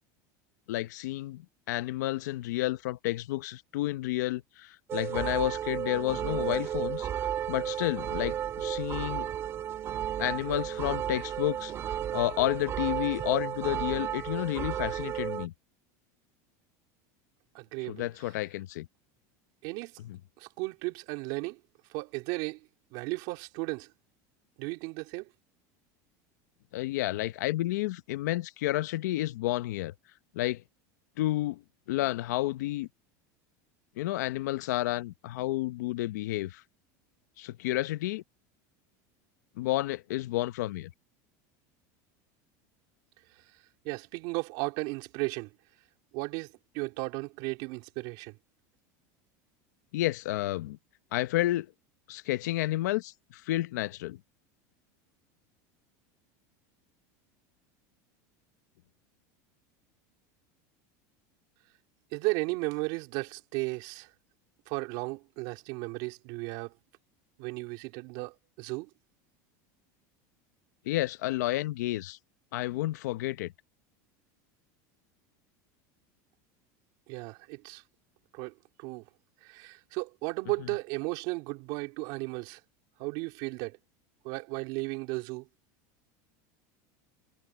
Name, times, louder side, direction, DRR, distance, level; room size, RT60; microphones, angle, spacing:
voice 1, 0.7-7.1 7.5-9.3 10.2-11.7 12.1-15.5 17.9-18.9 20.0-20.2 26.7-29.9 30.3-30.6 31.2-31.6 31.9-32.9 34.0-36.6 37.4-38.2 39.6-40.9 49.9-50.8 51.1-51.7 52.1-54.2 70.9-72.2 72.5-73.5, left 16 dB, 90° left, 0.8 m, -31 dB
sound 1, 4.9-15.5, right 10 dB, 30° right, 2.3 m, -33 dB
voice 2, 17.5-18.1 19.6-20.0 20.4-21.6 21.9-23.9 24.6-25.3 43.8-45.5 46.1-48.4 62.1-64.1 64.7-66.7 67.4-68.9 77.1-77.8 78.3-79.0 79.4-82.6 83.0-83.8 84.2-85.5, right 25 dB, 55° right, 3.8 m, -35 dB
supercardioid pair, 160°, 9 cm